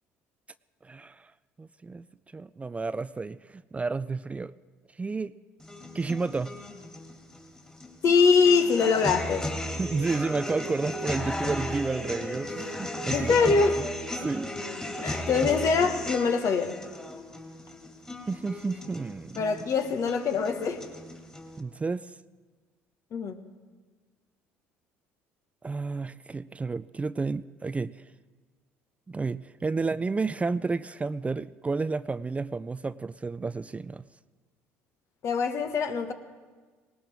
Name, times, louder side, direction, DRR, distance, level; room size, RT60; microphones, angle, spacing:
voice 1, 0.8-1.3 1.6-2.0 2.3-4.5 5.0-5.3 5.9-6.5 9.8-13.5 14.2-14.5 18.3-19.4 21.6-22.1 25.6-28.0 29.1-34.0, right 4 dB, 20° right, 15 dB, 0.4 m, -31 dB
sound 1, 5.6-21.6, left 1 dB, 15° left, 2.8 m, -36 dB
voice 2, 8.0-9.5 13.1-13.8 15.0-16.8 19.4-20.8 23.1-23.4 35.2-36.1, left 5 dB, 55° left, 7 dB, 1.5 m, -23 dB
19.0 x 18.5 x 3.5 m, 1.4 s
hypercardioid pair, 65°, 6 cm